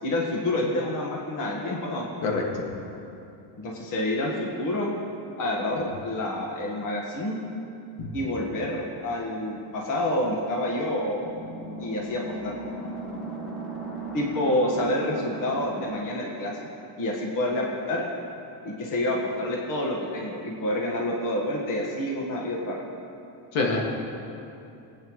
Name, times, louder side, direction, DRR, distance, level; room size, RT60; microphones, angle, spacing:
voice 1, 0.0-2.0 3.6-4.9 5.4-7.4 8.1-11.3 11.8-12.5 14.1-16.5 17.0-18.0 18.6-22.8, left 1 dB, 45° left, -1 dB, 1.6 m, -28 dB
voice 2, 2.2-2.7 5.8-5.9 8.0-8.1 23.5-23.8, left 3 dB, 85° left, 0 dB, 2.1 m, -26 dB
sound 1, 9.4-15.9, right 2 dB, ahead, 2.2 m, -38 dB
20.5 x 9.2 x 3.2 m, 2.7 s
cardioid pair, 165°, 44 cm